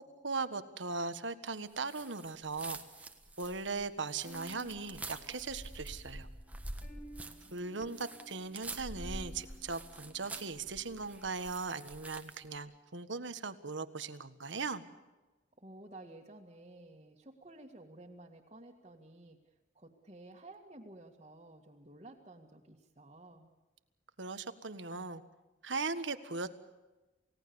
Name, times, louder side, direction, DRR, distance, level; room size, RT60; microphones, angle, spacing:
voice 1, 0.2-2.8 3.4-6.3 7.5-14.8 24.2-25.2 25.6-26.6, right 4 dB, 85° right, 11 dB, 1.6 m, -39 dB
sound 1, 1.8-12.5, right 2 dB, 10° right, 1.4 m, -47 dB
sound 2, 4.2-11.4, equal, 35° left, 5.4 m, -57 dB
voice 2, 7.2-7.9 15.6-19.4 19.7-23.5, right 2 dB, 35° right, -3 dB, 2.1 m, -53 dB
29.0 x 17.5 x 7.1 m, 1.1 s
head